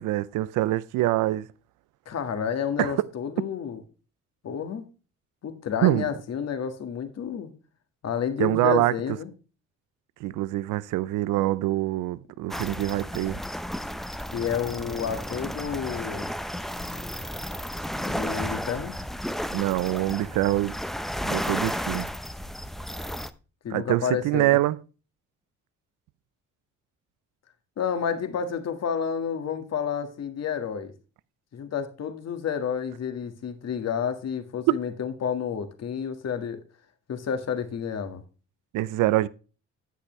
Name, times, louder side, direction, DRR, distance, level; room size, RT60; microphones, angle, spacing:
voice 1, 0.0-1.5 2.8-3.1 5.8-6.1 8.4-8.9 10.2-13.4 19.5-20.7 21.2-22.1 23.7-24.8 38.7-39.3, right 16 dB, 85° right, 0.5 m, -25 dB
voice 2, 2.0-3.8 4.4-4.8 5.4-7.5 8.0-9.3 14.3-16.3 17.9-18.9 23.6-24.6 27.8-30.9 31.5-36.6 37.1-38.2, left 7 dB, 55° left, 1.7 m, -30 dB
sound 1, 12.5-23.3, equal, ahead, 0.6 m, -33 dB
9.9 x 8.2 x 3.1 m
cardioid pair, 90°, 30 cm